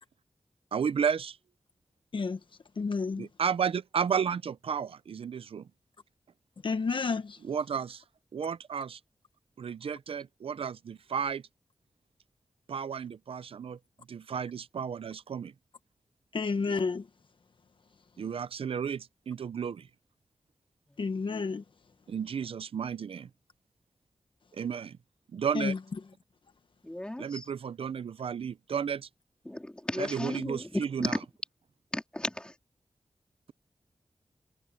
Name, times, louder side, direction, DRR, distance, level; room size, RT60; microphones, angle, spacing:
voice 1, 0.7-1.4 3.2-5.7 7.4-8.0 8.3-9.0 9.6-11.4 12.7-13.8 14.1-15.5 18.2-19.9 22.1-23.3 24.5-25.0 25.3-25.7 27.2-29.1 30.0-31.2, right 7 dB, 80° right, 0.5 m, -33 dB
voice 2, 2.8-3.3 6.6-7.4 16.3-17.1 21.0-21.6 25.5-25.8, left 4 dB, 60° left, 1.3 m, -30 dB
voice 3, 26.8-27.5 29.5-31.2 31.9-32.6, left 1 dB, 10° left, 3.7 m, -34 dB
wide cardioid pair, 130°, 10 cm